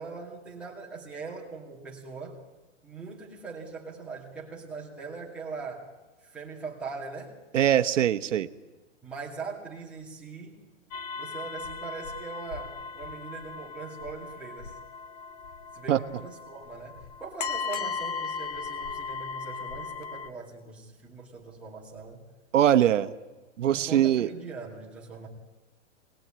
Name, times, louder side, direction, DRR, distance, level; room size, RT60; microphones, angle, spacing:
voice 1, 0.0-2.4 2.8-5.9 6.2-7.3 9.0-10.6 11.2-14.8 15.7-22.2 23.6-25.3, right 4 dB, 5° right, -5 dB, 2.3 m, -41 dB
voice 2, 7.5-8.5 15.9-16.0 22.5-23.1 23.6-24.3, right 11 dB, 70° right, 10 dB, 1.1 m, -22 dB
sound 1, 10.9-20.3, left 5 dB, 30° left, 0.9 m, -37 dB
24.5 x 19.5 x 8.9 m, 1.1 s
hypercardioid pair, 175°, 38 cm